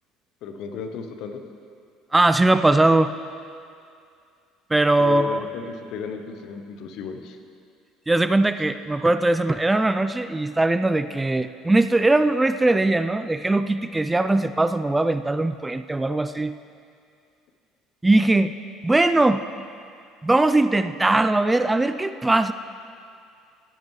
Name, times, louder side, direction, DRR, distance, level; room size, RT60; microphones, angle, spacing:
voice 1, 0.4-1.4 5.0-7.4, left 5 dB, 60° left, 7 dB, 0.8 m, -34 dB
voice 2, 2.1-3.1 4.7-5.4 8.1-16.5 18.0-18.5 18.8-19.4 20.2-22.5, right 2 dB, 15° right, 12 dB, 0.4 m, -20 dB
14.5 x 10.5 x 3.1 m, 2.4 s
hypercardioid pair, 60°, 0 cm